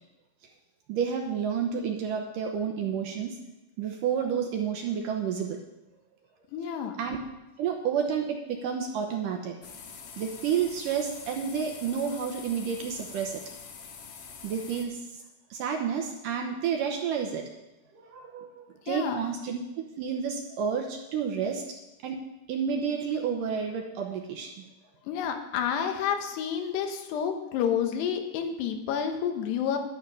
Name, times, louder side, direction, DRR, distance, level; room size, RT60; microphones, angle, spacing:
voice 1, 0.9-3.4 3.8-5.6 7.0-7.2 7.6-9.6 10.2-13.4 14.4-15.0 15.5-17.4 17.9-19.6 20.0-21.6 22.0-22.2 22.5-24.6, right 7 dB, 70° right, 2 dB, 2.1 m, -30 dB
voice 2, 6.5-7.0 18.9-19.2 25.1-29.8, left 8 dB, 90° left, 5 dB, 3.3 m, -29 dB
sound 1, 9.6-14.9, left 6 dB, 70° left, 3.2 m, -45 dB
11.0 x 10.5 x 5.5 m, 0.97 s
omnidirectional pair, 4.7 m